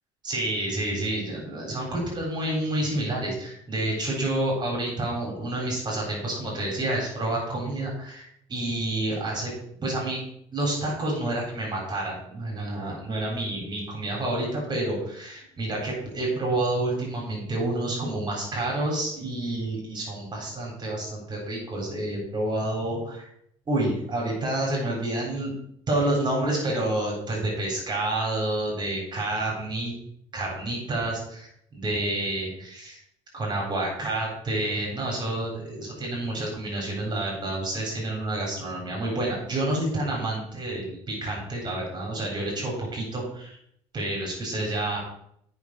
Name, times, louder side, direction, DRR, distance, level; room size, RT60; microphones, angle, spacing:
voice 1, 0.2-9.5 9.8-10.2 10.5-23.2 23.7-25.5 25.9-29.9 30.3-33.0 33.3-43.6 43.9-45.0, right 1 dB, 30° right, -2 dB, 4.1 m, -29 dB
8.4 x 5.7 x 6.2 m, 0.71 s
supercardioid pair, 95°, 14 cm